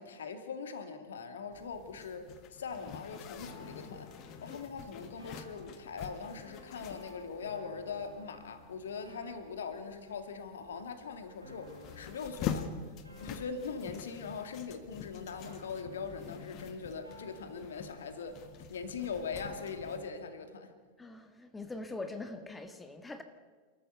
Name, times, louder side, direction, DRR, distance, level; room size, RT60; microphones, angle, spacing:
voice 1, 0.0-4.1 4.4-12.7 13.2-18.4 18.7-20.7, left 5 dB, 65° left, 2.4 m, -41 dB
Zipper (clothing), 1.5-20.1, left 8 dB, 35° left, 1.6 m, -46 dB
sound 1, 3.4-19.9, left 1 dB, 85° right, 4.4 m, -56 dB
voice 2, 21.0-23.2, left 2 dB, 10° left, 1.5 m, -42 dB
28.5 x 14.0 x 6.9 m
figure-of-eight pair, 90°, 0 cm